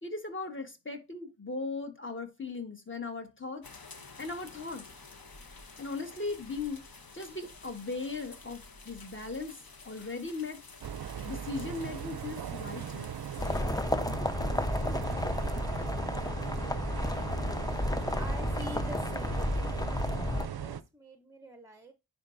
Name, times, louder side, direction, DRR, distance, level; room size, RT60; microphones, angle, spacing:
voice 1, 0.0-3.6 3.9-4.8 5.8-6.8 7.1-10.6 11.2-13.1, left 3 dB, 25° left, 1.4 m, -38 dB
sound 1, 3.6-13.6, left 3 dB, 50° left, 1.0 m, -51 dB
sound 2, 10.8-20.8, right 9 dB, 55° right, 0.5 m, -39 dB
sound 3, 13.4-20.5, left 1 dB, 10° left, 0.3 m, -32 dB
voice 2, 17.6-19.6 19.8-21.9, equal, 5° right, 0.7 m, -47 dB
9.9 x 3.9 x 2.5 m
wide cardioid pair, 45°, 45 cm